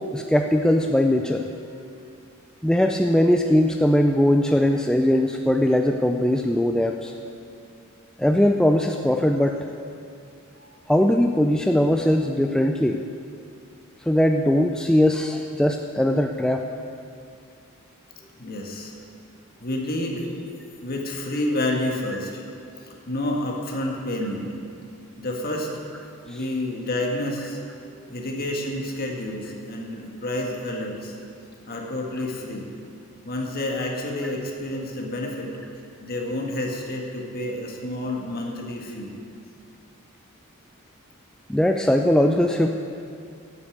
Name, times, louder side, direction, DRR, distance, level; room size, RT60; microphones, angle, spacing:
voice 1, 0.1-1.5 2.6-7.1 8.2-9.6 10.9-13.0 14.0-16.7 26.3-26.4 34.2-34.3 41.5-42.7, left 1 dB, 5° left, 3 dB, 0.3 m, -20 dB
voice 2, 1.8-2.1 10.5-10.7 18.4-18.9 19.6-20.3 20.8-22.4 23.1-24.5 25.2-25.8 26.2-27.6 28.1-31.2 31.7-32.7 33.2-35.6 36.0-39.1, left 1 dB, 45° left, 0 dB, 1.7 m, -29 dB
9.5 x 8.4 x 8.2 m, 2.4 s
head